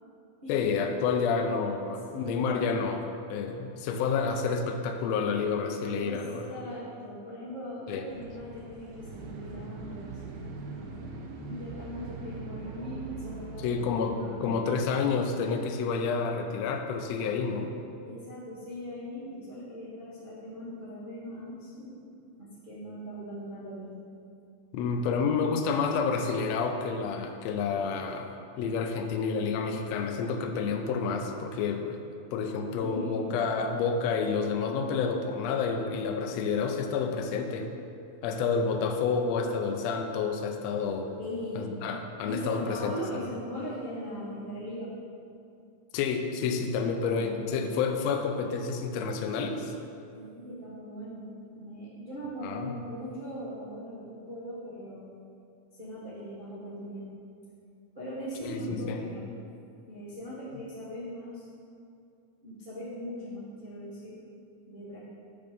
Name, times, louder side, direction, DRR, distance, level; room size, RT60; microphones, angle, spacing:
voice 1, 0.5-6.5 7.9-8.0 13.6-17.7 24.7-32.0 32.3-37.7 38.2-41.1 41.5-42.9 45.9-49.7 52.4-52.8 58.4-59.0, left 5 dB, 85° left, 4 dB, 1.4 m, -29 dB
voice 2, 2.1-2.6 6.0-6.2 6.4-10.2 11.5-13.8 14.2-14.5 18.1-22.1 22.4-23.9 32.8-33.3 41.2-41.7 42.2-44.9 46.8-47.7 50.1-55.1 55.8-57.1 57.9-59.3 59.9-61.5 62.4-64.2 64.7-65.0, equal, 60° right, -10 dB, 0.5 m, -40 dB
sound 1, 8.1-14.5, right 4 dB, 85° right, 1.4 m, -42 dB
6.8 x 5.2 x 5.3 m, 2.5 s
omnidirectional pair, 3.6 m